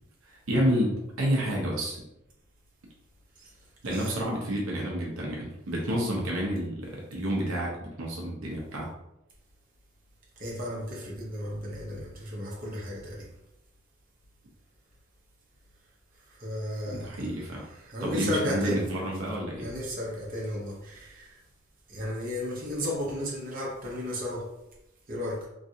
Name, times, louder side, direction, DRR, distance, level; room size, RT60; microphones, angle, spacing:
voice 1, 0.2-2.0 3.8-8.9 17.0-17.6 18.0-19.7, equal, 85° right, -2 dB, 0.7 m, -29 dB
voice 2, 3.8-4.2 10.4-13.3 16.3-18.8 19.6-21.4 21.9-24.5 25.1-25.5, left 1 dB, 45° right, -4 dB, 0.9 m, -34 dB
3.1 x 2.5 x 2.7 m, 0.86 s
head